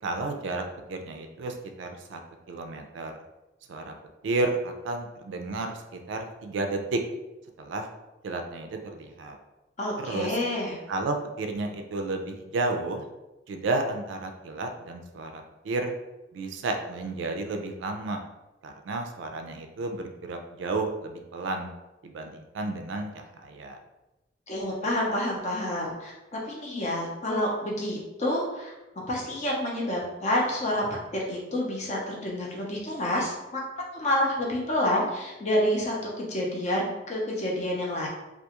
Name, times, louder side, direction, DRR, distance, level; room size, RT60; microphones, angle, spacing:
voice 1, 0.0-2.2 2.5-3.1 3.7-3.9 4.2-7.0 7.6-7.9 8.2-9.4 10.0-10.4 10.9-13.1 13.5-15.9 16.3-18.2 18.6-21.7 22.0-23.8, right 2 dB, 75° right, 5 dB, 0.3 m, -32 dB
voice 2, 9.8-10.8 24.5-28.7 29.1-30.9 31.1-33.6 33.9-38.1, left 1 dB, 35° left, -2 dB, 0.6 m, -28 dB
2.4 x 2.3 x 2.8 m, 1.0 s
head